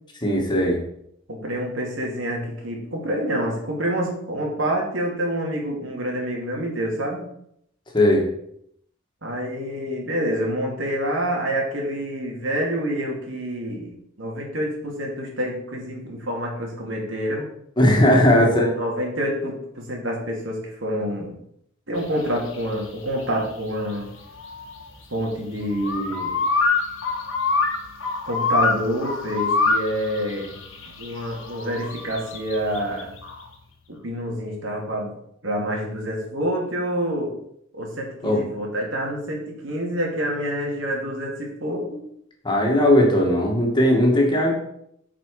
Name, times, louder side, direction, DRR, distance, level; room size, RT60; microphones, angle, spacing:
voice 1, 0.2-0.8 7.9-8.2 17.8-18.7 38.2-38.4 42.4-44.5, left 1 dB, 25° left, 0 dB, 2.0 m, -18 dB
voice 2, 1.3-7.3 9.2-13.9 14.2-17.5 18.3-21.4 21.9-24.1 25.1-26.4 28.2-30.5 31.0-33.1 33.9-35.1 35.4-37.3 37.7-42.0, equal, 75° right, -1 dB, 2.4 m, -27 dB
sound 1, 22.0-33.5, left 3 dB, 85° left, 1.4 m, -26 dB
9.0 x 5.1 x 4.9 m, 0.72 s
head